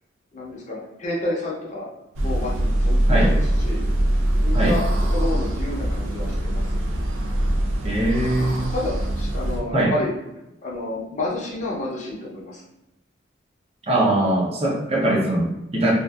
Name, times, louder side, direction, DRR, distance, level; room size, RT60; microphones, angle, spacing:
voice 1, 0.3-1.9 2.2-3.8 4.4-6.7 8.4-10.1 10.6-12.6 14.2-14.4 14.9-15.1, left 2 dB, 35° left, -4 dB, 0.6 m, -30 dB
sound 1, 2.2-9.6, right 1 dB, 80° right, 0.4 m, -22 dB
voice 2, 7.8-8.7 9.7-9.9 13.8-15.9, right 1 dB, 30° right, -3 dB, 0.5 m, -21 dB
2.7 x 2.3 x 2.3 m, 0.88 s
head